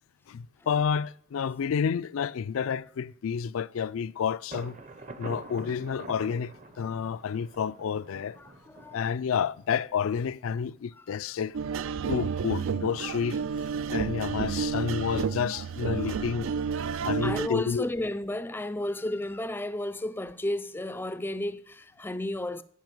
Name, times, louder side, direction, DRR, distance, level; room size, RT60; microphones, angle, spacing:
voice 1, 0.3-4.8 5.2-8.4 8.9-11.6 12.1-13.4 13.9-16.5 17.0-17.8, left 7 dB, 80° left, 0.4 m, -30 dB
Thunder, 4.5-10.2, right 3 dB, 35° right, 0.7 m, -46 dB
voice 2, 8.4-9.0 10.9-11.1 12.0-12.1 15.9-16.3 16.9-22.6, left 1 dB, 10° left, 0.4 m, -33 dB
sound 1, 11.5-17.5, right 6 dB, 75° right, 0.4 m, -31 dB
14.0 x 5.7 x 6.0 m
head